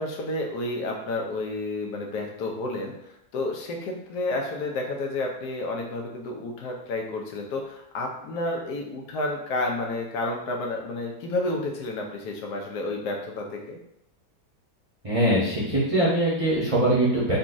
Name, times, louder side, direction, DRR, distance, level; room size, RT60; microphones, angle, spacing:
voice 1, 0.0-13.8, left 2 dB, 85° left, 1 dB, 1.2 m, -30 dB
voice 2, 15.0-17.4, right 1 dB, 30° right, -8 dB, 0.7 m, -22 dB
4.0 x 2.3 x 2.6 m, 0.77 s
omnidirectional pair, 1.7 m